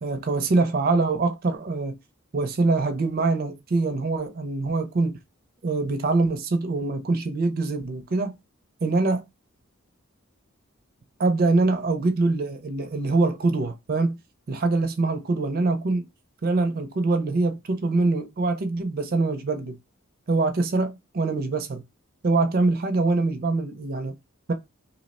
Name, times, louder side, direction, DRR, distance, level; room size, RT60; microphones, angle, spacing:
voice 1, 0.0-1.9 2.3-5.1 5.6-8.3 8.8-9.2 11.2-14.2 14.5-16.1 16.4-19.8 20.3-21.8 22.2-24.1 24.5-24.6, right 3 dB, 45° right, 0.5 m, -24 dB
2.7 x 2.0 x 4.0 m
head